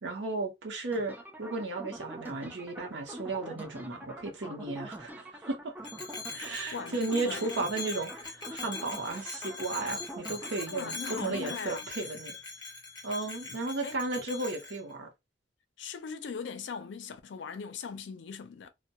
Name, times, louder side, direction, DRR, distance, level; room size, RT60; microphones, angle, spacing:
voice 1, 0.0-5.7 6.3-12.4 13.0-15.1, right 3 dB, 85° right, 0.8 m, -34 dB
sound 1, 0.9-11.6, right 1 dB, 10° right, 0.4 m, -45 dB
Bell, 5.8-14.8, left 4 dB, 25° left, 0.7 m, -42 dB
voice 2, 6.7-7.5 10.7-11.9 13.8-14.0 15.8-18.7, left 5 dB, 80° left, 0.4 m, -40 dB
2.2 x 2.1 x 2.7 m
head